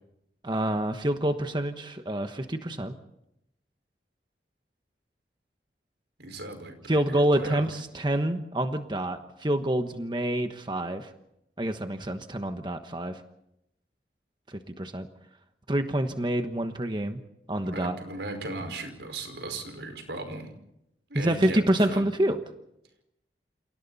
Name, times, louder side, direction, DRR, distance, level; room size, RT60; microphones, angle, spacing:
voice 1, 0.4-2.9 6.9-11.1 11.6-13.2 14.5-15.1 15.7-17.2 17.5-18.0 21.1-22.4, right 1 dB, 25° right, 6 dB, 1.2 m, -27 dB
voice 2, 6.2-7.6 17.7-20.5 21.1-22.0, right 2 dB, 85° right, 6 dB, 5.1 m, -37 dB
29.0 x 28.0 x 4.2 m, 0.80 s
head